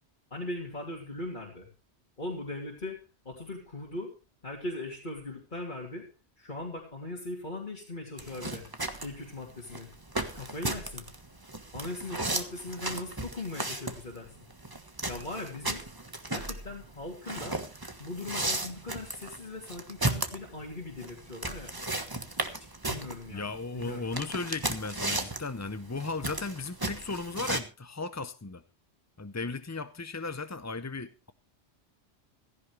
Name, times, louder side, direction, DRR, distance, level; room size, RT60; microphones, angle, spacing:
voice 1, 0.3-1.7 2.2-3.0 3.2-4.1 4.4-6.0 6.4-8.6 9.0-9.9 10.3-11.1 11.7-14.3 15.0-15.8 16.3-17.6 18.0-21.7 22.8-24.3, left 2 dB, 45° left, 3.1 m, -39 dB
sound 1, 8.2-27.6, right 2 dB, 20° right, 1.4 m, -35 dB
voice 2, 23.3-28.6 29.2-31.3, left 3 dB, 20° left, 0.4 m, -36 dB
16.0 x 15.0 x 3.2 m
omnidirectional pair, 1.2 m